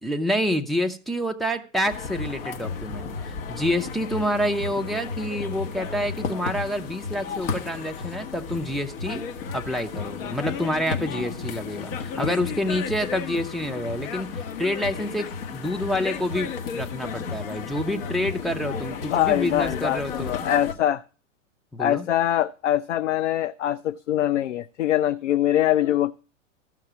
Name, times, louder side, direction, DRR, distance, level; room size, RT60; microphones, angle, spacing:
voice 1, 0.0-9.2 9.5-15.3 15.5-20.3 21.7-22.1, equal, ahead, 0.6 m, -28 dB
sound 1, 1.8-20.7, left 5 dB, 45° left, 1.6 m, -33 dB
voice 2, 19.1-21.0 21.8-26.1, left 12 dB, 65° left, 0.6 m, -23 dB
14.0 x 6.0 x 6.0 m
figure-of-eight pair, 105°, 39 cm